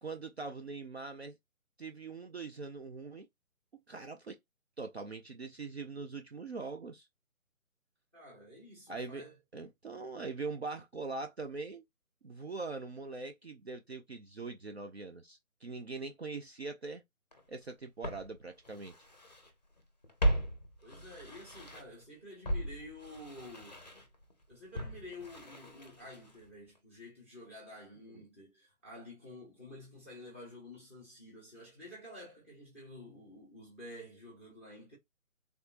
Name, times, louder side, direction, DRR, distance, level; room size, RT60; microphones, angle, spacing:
voice 1, 0.0-1.4 1.8-3.3 3.9-4.4 4.8-7.1 8.9-9.2 9.5-11.8 12.2-17.0 17.5-18.9, right 4 dB, 50° right, 0.5 m, -42 dB
voice 2, 8.1-9.4 20.8-23.8 24.5-35.0, left 1 dB, 10° right, 0.7 m, -50 dB
Walk footsteps, 17.3-17.4 18.0-19.5 19.8-22.0 22.4-26.5 26.8-26.9, right 1 dB, 30° left, 0.6 m, -37 dB
3.5 x 2.5 x 2.4 m
figure-of-eight pair, 145°, 42 cm